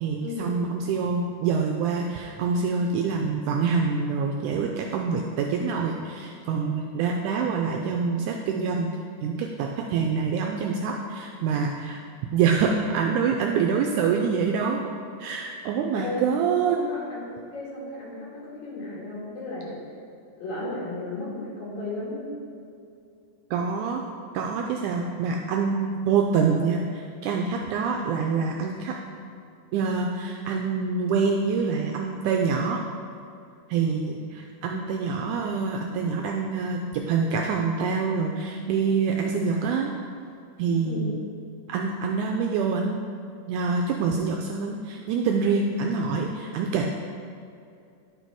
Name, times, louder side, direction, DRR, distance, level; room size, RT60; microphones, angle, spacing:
voice 1, 0.0-8.9 9.2-12.0 12.3-14.8 15.2-16.8 23.5-24.0 24.3-29.0 29.7-32.8 33.7-39.9 40.6-41.2 41.7-43.0 43.5-46.9, right 5 dB, 80° right, 1 dB, 1.8 m, -26 dB
voice 2, 16.6-19.7 20.4-22.3 34.7-35.0 40.9-41.1, left 2 dB, 65° left, -5 dB, 2.9 m, -34 dB
11.0 x 4.2 x 4.6 m, 2.5 s
omnidirectional pair, 3.9 m